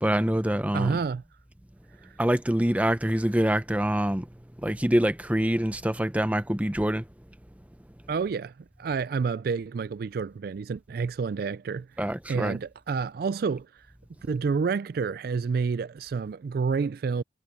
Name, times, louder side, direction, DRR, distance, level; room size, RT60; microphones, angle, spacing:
voice 1, 0.0-0.9 2.2-4.3 4.6-7.0 12.0-12.6, right 1 dB, 5° right, 0.7 m, -25 dB
voice 2, 0.7-1.2 2.0-2.2 8.1-8.5 8.8-11.9 12.3-13.9 14.3-17.2, right 5 dB, 50° right, 0.3 m, -29 dB
head